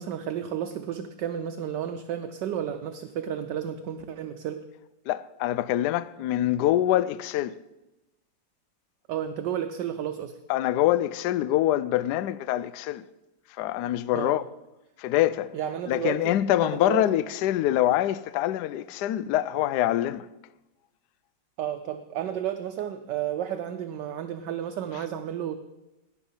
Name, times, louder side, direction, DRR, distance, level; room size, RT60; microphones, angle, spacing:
voice 1, 0.0-4.6 9.1-10.4 14.1-14.3 15.5-16.4 16.6-17.0 21.6-25.6, right 9 dB, 70° right, 1.2 m, -32 dB
voice 2, 5.1-7.6 10.5-13.1 13.5-14.4 15.0-15.6 15.9-20.3, left 13 dB, 75° left, 1.0 m, -25 dB
18.0 x 7.1 x 5.5 m
omnidirectional pair, 2.1 m